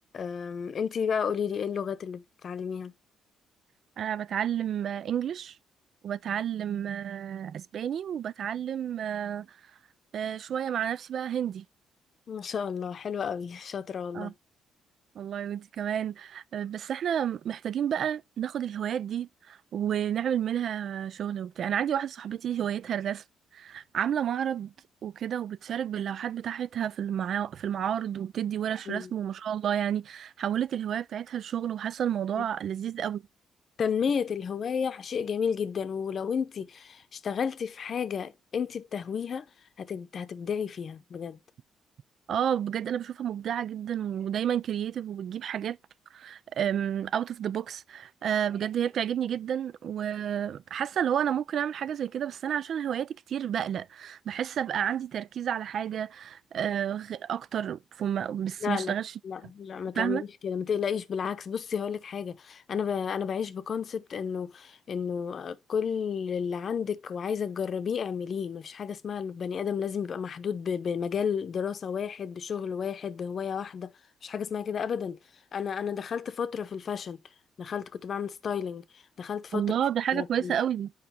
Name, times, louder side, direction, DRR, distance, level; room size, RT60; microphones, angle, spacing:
voice 1, 0.1-2.9 12.3-14.3 28.9-29.1 32.4-32.5 33.8-39.4 39.8-41.4 58.6-58.9 59.2-73.9 74.2-75.2 75.5-77.2 77.6-79.7 80.1-80.5, left 7 dB, 50° left, 0.7 m, -32 dB
voice 2, 4.0-5.6 6.0-9.5 10.1-11.6 14.1-14.3 15.2-23.2 23.5-24.7 25.0-33.2 42.3-45.8 46.1-59.1 60.0-60.2 79.5-80.9, right 9 dB, 65° right, 0.3 m, -30 dB
7.1 x 4.8 x 4.3 m
cardioid pair, 90°, 0 cm